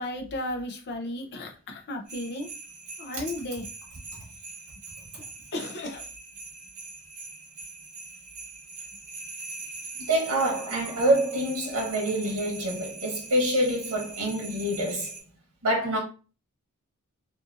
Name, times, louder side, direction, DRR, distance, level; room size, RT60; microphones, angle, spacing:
voice 1, 0.0-2.5 3.0-3.7 5.5-6.1, left 1 dB, 50° left, 0.6 m, -34 dB
sound 1, 2.1-15.2, right 3 dB, 50° right, 1.0 m, -42 dB
voice 2, 10.0-15.2 15.6-16.0, right 1 dB, 80° right, 0.9 m, -26 dB
2.6 x 2.5 x 2.5 m
head